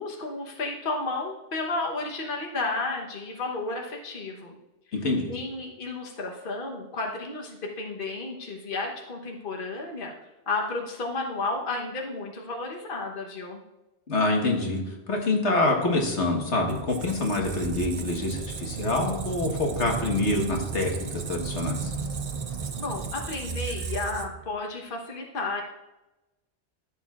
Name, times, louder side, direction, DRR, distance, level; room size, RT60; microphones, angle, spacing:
voice 1, 0.0-4.5 5.3-10.1 10.5-13.6 22.8-25.6, left 3 dB, 50° left, 0 dB, 1.3 m, -32 dB
voice 2, 4.9-5.3 14.1-21.9, left 2 dB, 80° left, 1 dB, 1.7 m, -26 dB
Squeak, 16.7-24.5, right 5 dB, 40° right, 0.6 m, -34 dB
14.5 x 7.6 x 2.4 m, 1.0 s
omnidirectional pair, 1.2 m